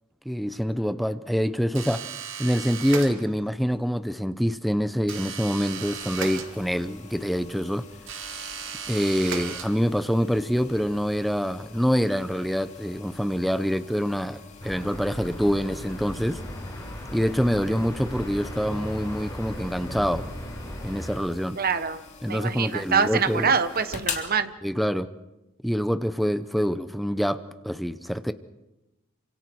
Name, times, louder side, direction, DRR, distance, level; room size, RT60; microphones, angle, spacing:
voice 1, 0.3-2.0 2.4-7.8 8.9-16.4 17.1-20.2 20.8-21.6 22.2-23.5 24.6-25.1 25.6-28.3, equal, ahead, 11 dB, 0.7 m, -26 dB
sound 1, 1.7-3.6 5.1-7.0 8.0-10.1, right 6 dB, 65° right, 2.3 m, -36 dB
sound 2, 5.7-24.3, left 5 dB, 35° left, 3.0 m, -44 dB
sound 3, 14.6-21.2, equal, 20° left, 4.5 m, -37 dB
voice 2, 21.6-22.0 22.3-24.5, right 6 dB, 45° right, 11 dB, 1.1 m, -25 dB
28.0 x 25.5 x 4.7 m, 0.99 s
head